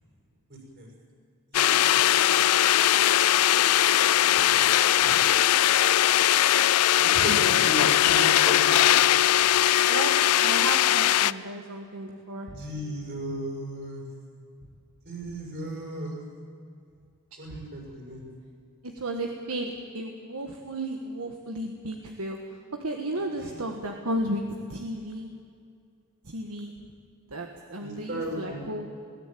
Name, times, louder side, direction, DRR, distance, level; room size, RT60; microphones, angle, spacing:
voice 1, 0.5-0.9 1.5-2.4 7.0-8.7 12.5-14.1 15.1-16.2 17.4-18.3 23.1-23.5 27.8-28.7, equal, 50° right, 0 dB, 6.7 m, -35 dB
sound 1, 1.5-11.3, left 12 dB, 85° left, 0.4 m, -20 dB
voice 2, 4.4-5.2 9.9-12.6 17.3-17.6 18.8-22.4 22.8-24.5 24.7-25.3 26.3-26.7 27.3-28.9, right 1 dB, 70° right, 3 dB, 1.6 m, -34 dB
20.5 x 16.5 x 9.2 m, 2.3 s
head